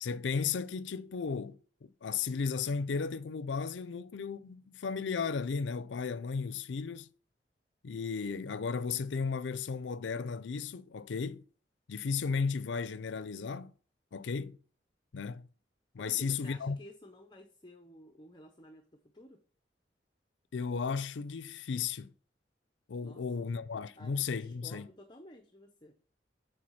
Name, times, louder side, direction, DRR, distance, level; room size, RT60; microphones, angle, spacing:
voice 1, 0.0-7.1 7.8-11.4 11.9-13.7 14.1-14.6 15.1-15.5 15.9-16.8 20.5-22.1 22.9-24.9, left 5 dB, 90° left, 0.5 m, -35 dB
voice 2, 16.0-18.8 19.1-19.4 23.0-23.5 24.0-25.9, left 1 dB, 25° left, 0.7 m, -53 dB
7.8 x 3.9 x 5.5 m
head